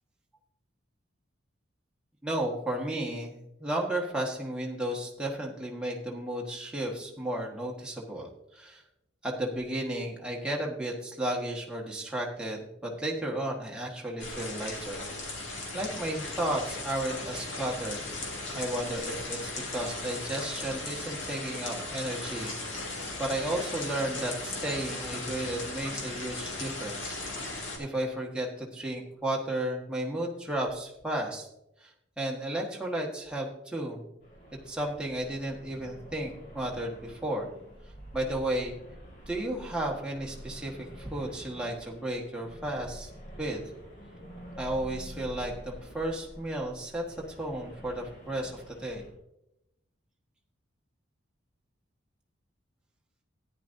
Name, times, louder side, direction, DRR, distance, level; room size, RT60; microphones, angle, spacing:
voice 1, 2.2-8.8 9.2-15.0 15.7-18.0 18.5-22.9 23.2-27.2 27.8-31.5 31.8-31.9 32.2-34.1 34.7-37.5 38.1-38.7 39.3-43.1 43.4-43.6 44.6-49.0, right 1 dB, 5° right, -2 dB, 1.4 m, -33 dB
sound 1, 14.2-27.8, left 2 dB, 70° left, 2.3 m, -37 dB
sound 2, 34.2-49.1, equal, 40° left, 2.5 m, -48 dB
13.5 x 10.0 x 2.7 m, 0.85 s
head